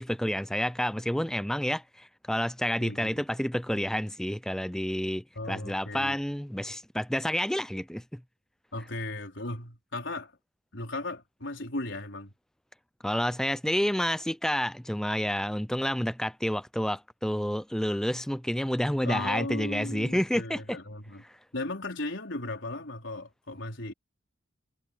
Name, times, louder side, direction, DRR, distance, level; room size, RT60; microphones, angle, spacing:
voice 1, 0.0-8.2 13.0-20.8 21.2-21.4, equal, 5° left, 0.4 m, -29 dB
voice 2, 2.8-3.2 5.4-6.2 8.7-10.3 10.7-12.3 19.0-21.2 21.5-23.9, left 2 dB, 70° left, 4.5 m, -36 dB
head